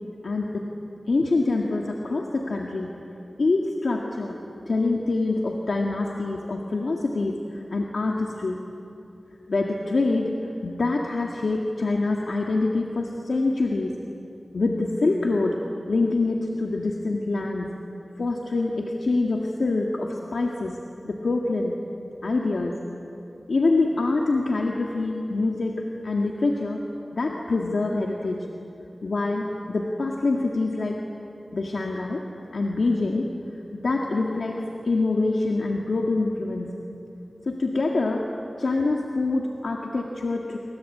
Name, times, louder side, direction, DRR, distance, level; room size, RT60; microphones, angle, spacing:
voice 1, 0.2-0.7 1.1-2.9 3.4-4.4 4.7-8.6 9.5-10.3 10.6-14.0 14.5-15.6 15.9-17.7 18.2-20.8 21.0-21.8 22.2-22.8 23.5-26.8 27.1-28.5 29.0-31.0 31.5-32.2 32.5-33.3 33.7-36.7 37.5-38.3 38.6-40.6, left 3 dB, 85° left, 0 dB, 1.9 m, -25 dB
27.5 x 25.0 x 8.7 m, 2.9 s
wide cardioid pair, 80°, 0 cm